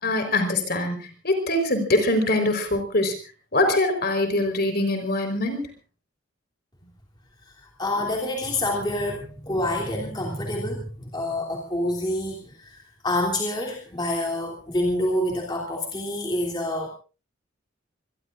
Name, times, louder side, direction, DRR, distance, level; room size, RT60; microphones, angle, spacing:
voice 1, 0.0-3.1 3.5-5.7, left 2 dB, 50° left, 6 dB, 4.4 m, -23 dB
voice 2, 7.4-16.9, left 1 dB, 20° left, -1 dB, 3.2 m, -27 dB
26.0 x 21.0 x 2.6 m, 0.34 s
head